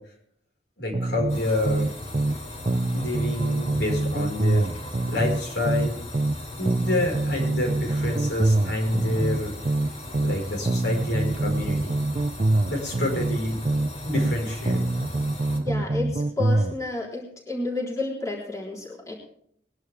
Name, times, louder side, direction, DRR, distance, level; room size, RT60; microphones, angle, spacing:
voice 1, 0.8-1.9 2.9-4.7 5.1-6.0 6.6-9.5 10.1-11.9 12.6-13.6 14.0-14.8, left 1 dB, 65° left, 0 dB, 5.1 m, -28 dB
sound 1, 0.9-2.4 2.7-6.4 6.7-10.4 10.7-14.4 14.7-16.8, right 2 dB, 35° right, 0.5 m, -25 dB
sound 2, 1.3-15.6, left 1 dB, 35° left, 3.1 m, -38 dB
voice 2, 15.6-19.1, left 3 dB, 20° left, -3 dB, 3.9 m, -31 dB
21.5 x 11.0 x 3.5 m, 0.65 s
head